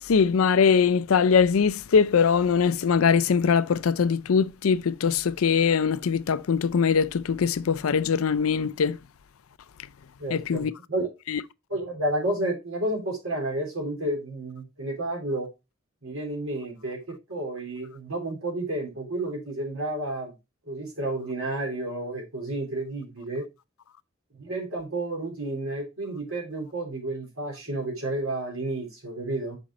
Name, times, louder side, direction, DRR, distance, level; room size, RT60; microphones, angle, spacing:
voice 1, 0.0-9.0 10.3-10.7 11.3-11.4, left 6 dB, 90° left, 0.5 m, -22 dB
voice 2, 10.2-11.0 11.7-15.5 16.0-20.3 20.7-23.5 24.4-29.6, right 1 dB, 85° right, 3.6 m, -31 dB
6.3 x 5.1 x 4.1 m
head